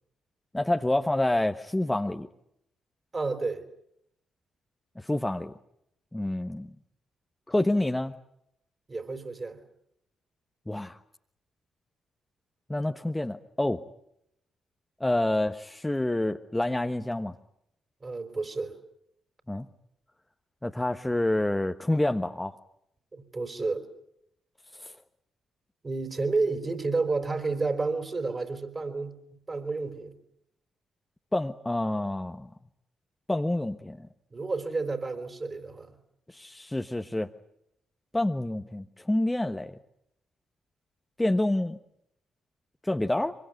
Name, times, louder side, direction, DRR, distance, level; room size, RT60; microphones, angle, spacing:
voice 1, 0.5-2.3 5.0-5.5 6.1-6.7 7.5-8.2 10.7-11.0 12.7-13.8 15.0-17.3 19.5-19.7 20.6-22.5 24.8-24.9 31.3-32.5 33.3-34.1 36.3-37.3 38.1-39.8 41.2-41.8 42.8-43.3, left 1 dB, 15° left, 1.2 m, -28 dB
voice 2, 3.1-3.6 8.9-9.6 18.0-18.8 23.1-23.9 25.8-29.2 29.5-30.2 34.3-35.9, right 3 dB, 35° right, 4.6 m, -30 dB
25.0 x 23.5 x 8.1 m
figure-of-eight pair, 40°, 0 cm